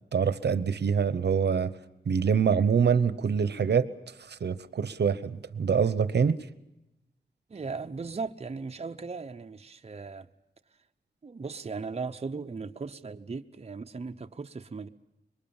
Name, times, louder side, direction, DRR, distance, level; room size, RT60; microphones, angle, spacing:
voice 1, 0.1-1.7 2.1-6.4, right 6 dB, 75° right, 0.9 m, -25 dB
voice 2, 7.5-10.3 11.2-14.9, right 4 dB, 35° right, 0.8 m, -37 dB
25.5 x 23.0 x 7.1 m
wide cardioid pair, 105°, 17 cm